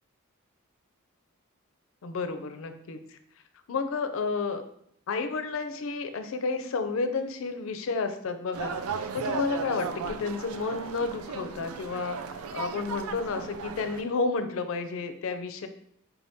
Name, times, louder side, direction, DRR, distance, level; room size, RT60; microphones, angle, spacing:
voice 1, 2.0-3.2 3.7-4.6 5.1-8.8 9.1-15.7, left 4 dB, 65° left, 9 dB, 0.4 m, -31 dB
sound 1, 8.5-14.0, right 5 dB, 80° right, 0.3 m, -36 dB
4.5 x 3.5 x 2.6 m, 0.71 s
head